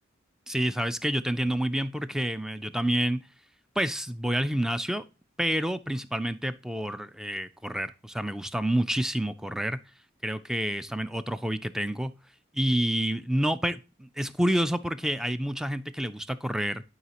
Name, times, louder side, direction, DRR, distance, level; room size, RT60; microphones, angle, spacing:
voice 1, 0.5-3.2 3.8-5.0 5.4-9.8 10.2-12.1 12.5-16.8, right 1 dB, 5° right, 13 dB, 0.3 m, -28 dB
11.0 x 4.8 x 2.9 m, 0.30 s
head